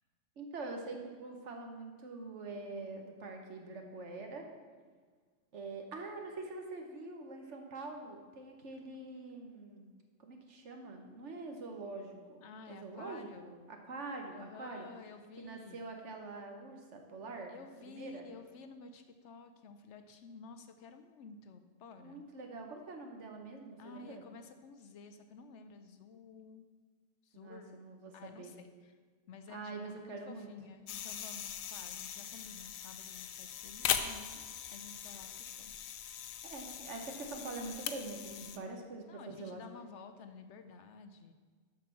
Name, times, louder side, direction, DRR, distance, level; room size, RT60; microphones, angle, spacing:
voice 1, 0.4-4.4 5.5-9.9 10.2-12.4 12.7-13.5 13.8-14.9 15.4-17.5 17.8-18.2 22.0-24.2 27.3-28.5 29.5-30.5 36.5-39.6, right 3 dB, 60° right, 3 dB, 1.4 m, -45 dB
voice 2, 12.4-13.6 14.3-15.9 17.5-22.2 23.8-26.7 27.2-29.0 29.3-34.4 34.7-35.7 39.1-41.3, left 4 dB, 65° left, 8 dB, 0.9 m, -52 dB
sound 1, 30.9-38.6, left 9 dB, 90° left, 1.0 m, -40 dB
7.6 x 6.1 x 5.9 m, 1.5 s
omnidirectional pair, 1.4 m